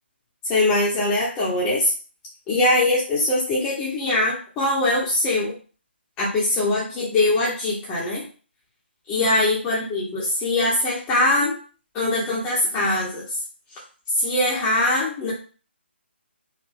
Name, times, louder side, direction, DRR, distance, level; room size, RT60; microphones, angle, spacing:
voice 1, 0.4-1.9 2.5-5.5 6.2-8.2 9.1-11.6 11.9-13.4 14.2-15.3, left 2 dB, 15° left, -6 dB, 0.8 m, -22 dB
4.0 x 2.2 x 3.5 m, 0.38 s
figure-of-eight pair, 145°, 6 cm